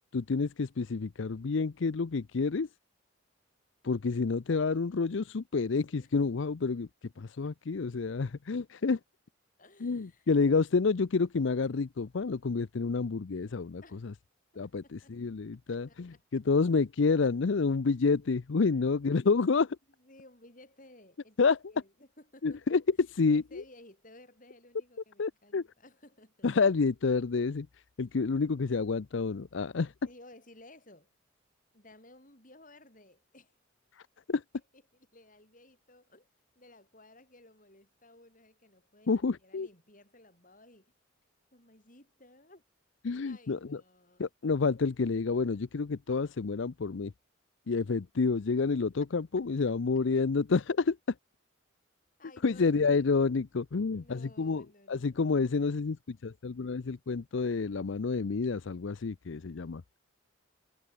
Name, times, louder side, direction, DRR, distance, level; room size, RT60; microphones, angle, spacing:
voice 1, 0.1-2.7 3.8-6.9 7.2-9.0 9.8-14.1 14.6-19.8 21.4-21.6 22.4-23.6 25.2-25.6 26.4-27.7 28.0-29.9 33.9-34.0 34.3-34.4 39.1-39.7 43.0-43.8 44.2-47.1 47.7-51.0 52.4-59.8, left 4 dB, 65° left, 0.5 m, -29 dB
voice 2, 9.6-10.6 13.8-14.1 14.5-15.1 15.7-16.4 20.0-22.6 23.3-26.5 29.8-31.1 31.7-33.5 34.5-34.6 35.1-36.3 36.5-40.9 41.5-42.6 43.2-44.2 52.2-53.3 53.9-55.4, left 1 dB, 40° left, 7.7 m, -57 dB
head